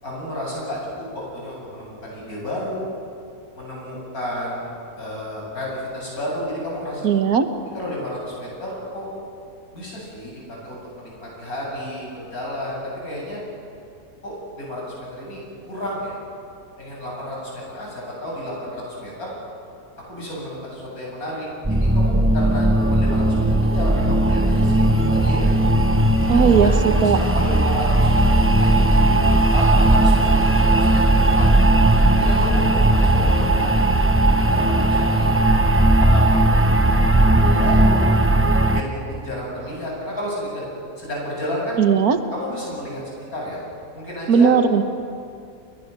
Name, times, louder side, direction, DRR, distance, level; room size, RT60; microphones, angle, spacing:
voice 1, 0.0-0.8 1.1-2.9 3.6-7.1 7.7-9.1 9.7-13.4 14.2-16.1 16.8-19.3 20.1-25.5 26.2-29.0 29.5-31.7 32.1-33.8 34.3-35.5 36.0-37.0 37.4-38.4 38.7-40.6 41.0-41.8 42.3-43.0 43.3-43.6 43.9-44.5, equal, 65° left, -3 dB, 8.7 m, -31 dB
voice 2, 7.0-7.5 26.3-27.2 41.8-42.2 44.3-44.8, right 6 dB, 70° right, 8 dB, 1.8 m, -17 dB
sound 1, 21.6-38.8, right 1 dB, 10° right, 0.7 m, -17 dB
29.0 x 21.5 x 6.8 m, 2.5 s
omnidirectional pair, 1.7 m